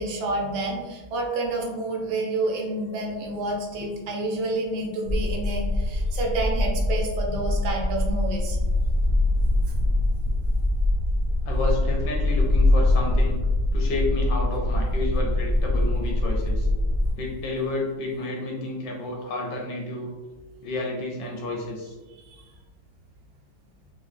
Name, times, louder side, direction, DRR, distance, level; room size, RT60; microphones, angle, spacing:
voice 1, 0.0-8.6 22.2-22.5, right 2 dB, 75° right, -1 dB, 1.4 m, -29 dB
sound 1, 5.0-17.1, left 1 dB, 40° right, 0.5 m, -23 dB
voice 2, 11.4-13.4 13.7-16.7 17.2-20.1 20.6-22.0, left 2 dB, 75° left, -1 dB, 1.1 m, -30 dB
4.3 x 2.2 x 2.5 m, 1.2 s
omnidirectional pair, 2.2 m